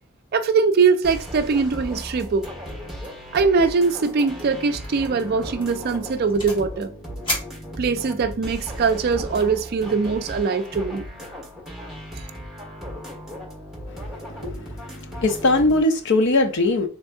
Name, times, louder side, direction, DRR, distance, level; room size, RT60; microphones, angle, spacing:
voice 1, 0.3-2.4 3.3-6.9 7.8-11.0, right 4 dB, 50° right, 0.4 m, -21 dB
sound 1, 1.0-15.8, equal, ahead, 1.6 m, -36 dB
sound 2, 2.4-2.7 3.0-3.3 3.5-3.6 4.2-4.4 4.8-5.1 5.6-6.7 7.2-8.2, left 1 dB, 25° left, 1.4 m, -33 dB
voice 2, 14.3-14.7 15.2-16.9, left 2 dB, 60° left, 0.6 m, -20 dB
3.5 x 3.3 x 2.7 m
head